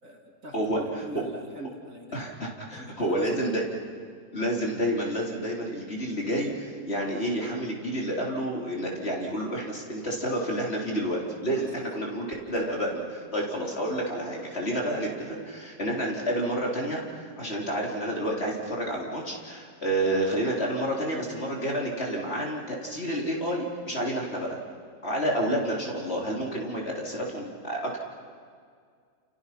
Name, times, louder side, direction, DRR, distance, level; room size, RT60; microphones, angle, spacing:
voice 1, 0.0-2.2 2.7-3.6 11.5-11.9, right 1 dB, 50° right, 1 dB, 3.1 m, -42 dB
voice 2, 0.5-1.0 2.1-3.6 4.3-24.6 25.0-28.0, right 1 dB, 40° left, -2 dB, 3.9 m, -29 dB
29.5 x 29.0 x 5.9 m, 2.1 s
omnidirectional pair, 1.7 m